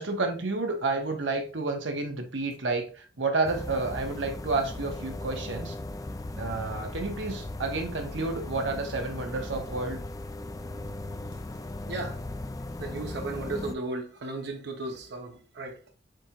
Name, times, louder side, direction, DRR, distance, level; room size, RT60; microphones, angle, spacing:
voice 1, 0.0-5.7 6.3-10.0, right 3 dB, 90° right, 1.1 m, -30 dB
sound 1, 3.4-13.7, left 2 dB, 20° left, 0.4 m, -37 dB
voice 2, 11.9-12.2 12.8-15.9, right 2 dB, 65° right, 0.8 m, -35 dB
7.5 x 3.0 x 2.4 m
head